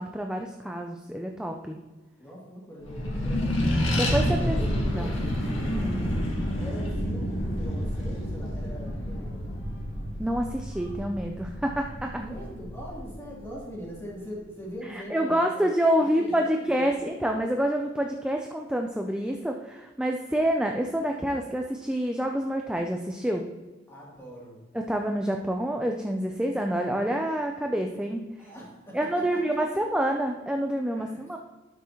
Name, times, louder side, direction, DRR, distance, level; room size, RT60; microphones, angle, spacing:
voice 1, 0.0-1.8 3.9-4.6 4.9-5.1 5.7-6.0 10.2-12.2 14.8-23.5 24.7-28.5 28.9-31.4, right 1 dB, 5° right, 2 dB, 0.5 m, -27 dB
voice 2, 2.2-4.0 4.2-9.5 12.2-17.2 23.9-24.6 28.4-29.4 29.7-29.8 31.0-31.2, equal, 15° left, -6 dB, 2.9 m, -41 dB
Accelerating revving vroom, 2.8-13.8, equal, 85° left, 2.0 m, -29 dB
12.0 x 5.9 x 3.0 m, 1.2 s
head